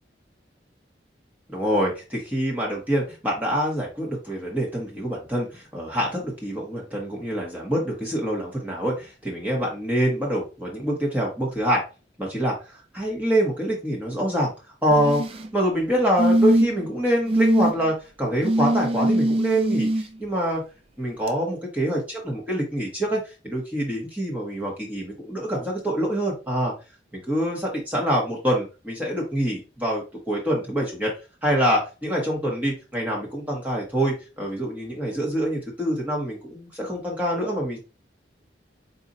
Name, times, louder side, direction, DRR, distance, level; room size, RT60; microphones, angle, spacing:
voice 1, 1.5-11.8 12.2-14.5 14.8-15.2 15.5-20.6 21.0-26.7 27.1-31.1 31.4-37.8, equal, 10° right, -3 dB, 1.1 m, -25 dB
sound 1, 14.9-15.5 16.2-16.9 17.3-17.7 18.4-20.0 21.3-21.4, right 1 dB, 30° right, 0.4 m, -21 dB
4.1 x 2.4 x 3.8 m, 0.31 s
head